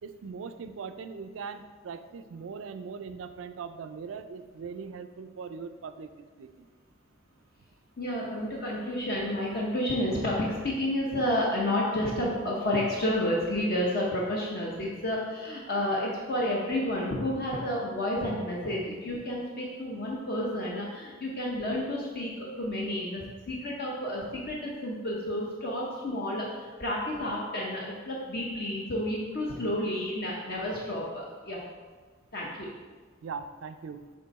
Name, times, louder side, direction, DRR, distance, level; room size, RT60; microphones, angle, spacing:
voice 1, 0.0-6.7 33.2-34.1, right 5 dB, 90° right, 10 dB, 0.4 m, -40 dB
voice 2, 8.0-31.6 32.3-32.7, left 1 dB, 50° left, -4 dB, 0.8 m, -30 dB
6.7 x 3.5 x 4.1 m, 1.4 s
head